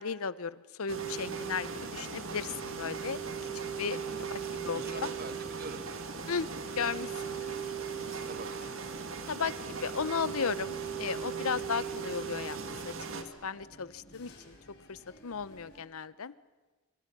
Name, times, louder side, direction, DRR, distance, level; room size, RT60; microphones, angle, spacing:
voice 1, 0.0-3.2 3.8-5.0 6.3-6.5 6.8-7.5 9.3-12.6 12.8-12.9 13.4-14.6 14.9-16.3, left 5 dB, 75° left, 18 dB, 0.8 m, -35 dB
sound 1, 0.9-13.2, right 6 dB, 65° right, 2.0 m, -38 dB
sound 2, 1.7-15.8, left 1 dB, 50° left, 6.1 m, -56 dB
voice 2, 4.7-5.8 8.2-8.8, right 2 dB, 40° right, 10 dB, 1.5 m, -45 dB
26.5 x 25.5 x 6.1 m, 1.3 s
head